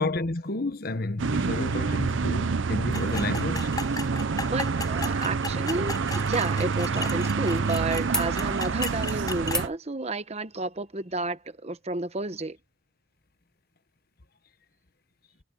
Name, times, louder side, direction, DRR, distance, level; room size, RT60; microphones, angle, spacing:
voice 1, 0.0-3.7, left 2 dB, 50° left, 1.2 m, -31 dB
sound 1, 1.2-9.7, right 4 dB, 70° right, 0.6 m, -27 dB
sound 2, 2.9-9.6, left 4 dB, 20° left, 6.7 m, -37 dB
voice 2, 4.5-12.6, right 2 dB, 35° right, 1.0 m, -31 dB
sound 3, 8.1-8.3 8.6-9.0 9.5-9.8 11.1-11.2, left 1 dB, 5° left, 0.7 m, -36 dB
head